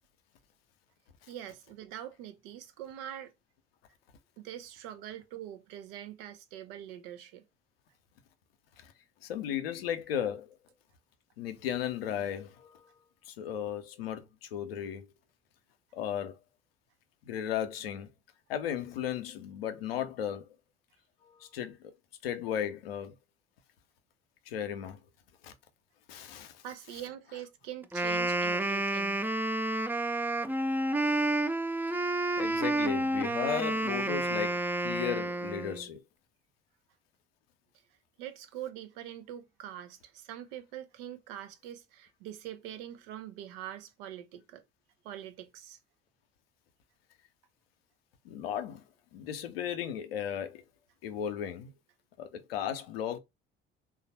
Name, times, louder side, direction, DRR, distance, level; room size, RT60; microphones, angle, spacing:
voice 1, 1.3-3.3 4.4-7.4 26.6-29.2 38.2-44.6 45.0-45.8, right 11 dB, 70° right, 0.7 m, -44 dB
voice 2, 9.2-10.6 11.4-12.9 13.3-15.1 15.9-16.4 17.3-18.1 18.5-20.5 21.2-21.9 22.2-23.1 24.5-25.0 25.4-25.5 26.1-26.6 32.4-36.0 48.2-48.8 49.1-50.6 51.0-51.7 52.2-53.2, left 9 dB, 85° left, 0.6 m, -35 dB
Wind instrument woodwind instrument, 27.8-35.9, right 2 dB, 5° right, 0.4 m, -30 dB
3.1 x 2.4 x 4.0 m
hypercardioid pair, 55°, 29 cm